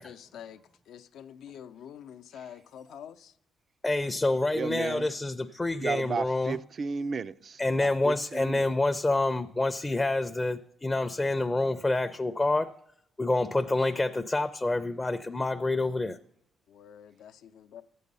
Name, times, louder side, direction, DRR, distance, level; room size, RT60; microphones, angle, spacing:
voice 1, 0.0-3.3 16.7-17.8, left 9 dB, 80° left, 0.6 m, -47 dB
voice 2, 3.8-6.6 7.6-12.7 13.2-16.2, left 2 dB, 20° left, 0.5 m, -27 dB
voice 3, 4.5-5.1 5.8-8.7, right 5 dB, 45° right, 0.4 m, -34 dB
11.5 x 8.4 x 5.4 m
cardioid pair, 90°, 0 cm